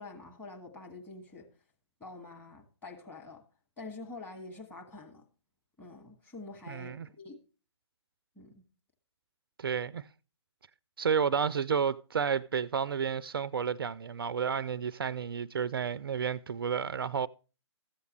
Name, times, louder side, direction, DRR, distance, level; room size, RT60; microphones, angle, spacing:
voice 1, 0.0-1.5 2.0-3.4 3.8-5.3 5.8-7.4 8.4-8.6, left 3 dB, 10° left, 1.7 m, -46 dB
voice 2, 6.7-7.1 9.6-10.1 11.0-17.3, right 6 dB, 50° right, 0.4 m, -31 dB
14.0 x 8.2 x 3.2 m
figure-of-eight pair, 135°, 15 cm